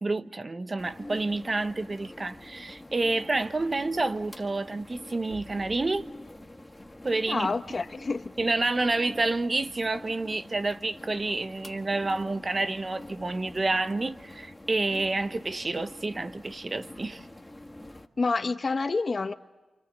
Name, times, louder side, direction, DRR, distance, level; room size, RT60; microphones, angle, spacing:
voice 1, 0.0-6.0 7.0-7.5 8.4-17.2, right 2 dB, 35° right, 1.1 m, -29 dB
sound 1, 0.8-18.1, left 1 dB, 15° left, 1.7 m, -46 dB
voice 2, 7.3-8.3 18.2-19.3, left 3 dB, 45° left, 1.0 m, -28 dB
29.0 x 26.5 x 7.5 m
cardioid pair, 75°, 0 cm